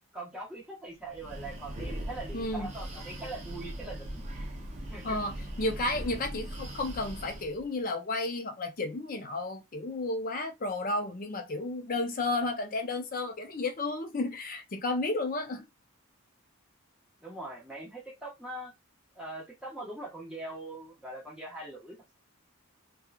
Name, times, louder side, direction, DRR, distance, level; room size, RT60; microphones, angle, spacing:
voice 1, 0.1-4.2 4.9-5.2 17.2-18.7 19.1-22.1, right 2 dB, 5° right, 1.0 m, -42 dB
Breathing, 1.0-7.6, right 1 dB, 30° right, 0.6 m, -40 dB
voice 2, 2.3-2.7 5.0-15.7, left 2 dB, 40° left, 0.5 m, -32 dB
2.9 x 2.3 x 2.3 m
head